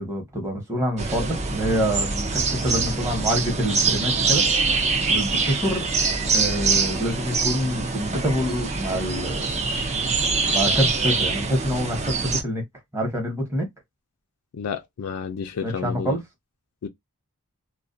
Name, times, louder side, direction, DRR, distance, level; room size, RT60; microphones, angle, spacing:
voice 1, 0.0-4.4 5.1-5.8 6.2-9.6 10.5-12.6 12.9-13.7 15.6-16.2, equal, 15° right, 0.9 m, -26 dB
sound 1, 1.0-12.4, right 4 dB, 30° right, 0.4 m, -24 dB
voice 2, 14.6-16.2 16.8-16.9, left 6 dB, 70° left, 0.4 m, -31 dB
2.3 x 2.1 x 2.5 m
head